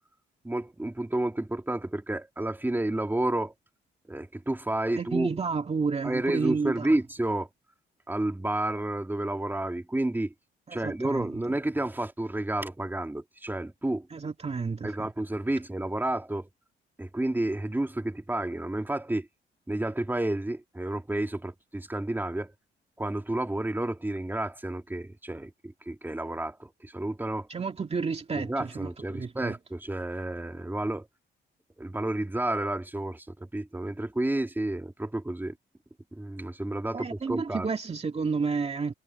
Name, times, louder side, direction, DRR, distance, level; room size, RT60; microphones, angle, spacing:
voice 1, 0.4-3.5 4.1-5.3 6.0-7.5 8.1-10.3 10.7-14.1 14.8-16.5 17.0-19.3 19.7-22.5 23.0-27.5 28.3-31.1 31.8-35.5 36.1-37.7, right 1 dB, 10° right, 3.1 m, -30 dB
voice 2, 5.0-6.9 10.7-11.4 14.1-15.1 27.5-29.6 36.9-38.9, right 5 dB, 30° right, 2.3 m, -31 dB
cardioid pair, 90°, 20 cm